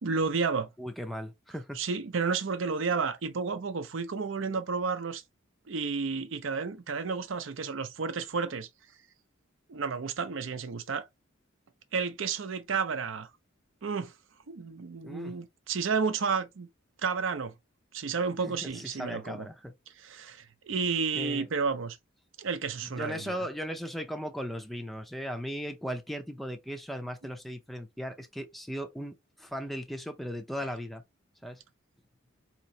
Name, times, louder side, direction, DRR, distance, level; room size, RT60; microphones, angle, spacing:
voice 1, 0.0-0.7 1.7-5.2 5.7-8.7 9.7-11.1 11.9-13.3 13.8-14.1 14.5-16.7 17.0-17.5 17.9-19.5 20.0-22.0 22.4-23.4, right 5 dB, 70° right, 0.6 m, -31 dB
voice 2, 0.8-1.8 15.0-15.4 18.4-19.7 21.1-21.5 22.9-31.0 31.4-31.6, equal, ahead, 0.4 m, -37 dB
4.1 x 2.9 x 2.7 m
head